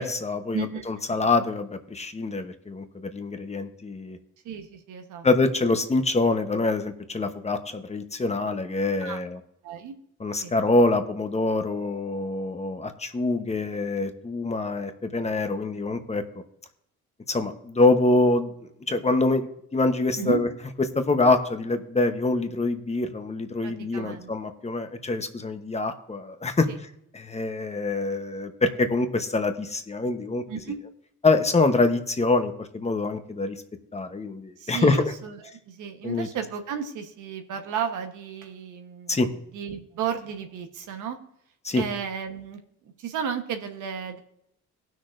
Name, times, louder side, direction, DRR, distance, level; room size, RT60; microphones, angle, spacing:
voice 1, 0.0-4.2 5.2-9.4 10.2-16.2 17.3-20.5 20.9-26.7 27.1-30.4 31.2-33.6 33.9-35.0 36.0-36.3 39.1-39.3 41.6-41.8, left 3 dB, 20° left, 7 dB, 1.0 m, -25 dB
voice 2, 0.5-1.3 4.4-5.3 9.0-9.2 9.6-9.9 10.4-10.5 20.2-20.4 23.6-24.3 26.7-26.8 30.5-30.8 34.6-41.2 41.7-44.2, right 7 dB, 80° right, 6 dB, 1.2 m, -34 dB
18.5 x 6.3 x 2.6 m, 0.75 s
cardioid pair, 90°, 30 cm